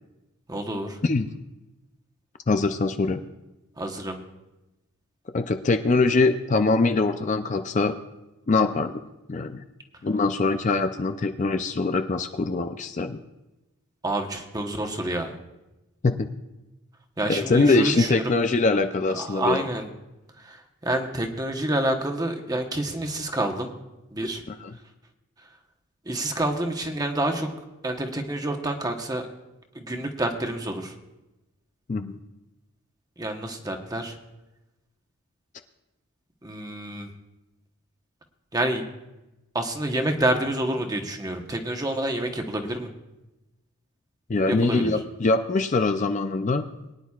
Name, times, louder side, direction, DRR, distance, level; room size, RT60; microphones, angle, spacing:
voice 1, 0.5-1.0 3.8-4.2 14.0-15.4 17.2-18.3 19.1-19.9 20.4-23.7 24.1-24.4 26.0-27.5 27.8-29.3 29.7-30.9 33.2-34.2 36.4-37.1 38.5-38.8 39.5-42.9 44.5-44.9, right 1 dB, 15° right, 3 dB, 1.0 m, -28 dB
voice 2, 2.5-3.2 5.3-8.0 8.5-8.9 9.3-9.6 10.0-13.2 16.0-16.3 17.5-19.6 24.5-24.7 31.9-32.2 44.3-46.7, left 3 dB, 35° left, 7 dB, 0.4 m, -23 dB
22.0 x 10.0 x 2.4 m, 1.0 s
head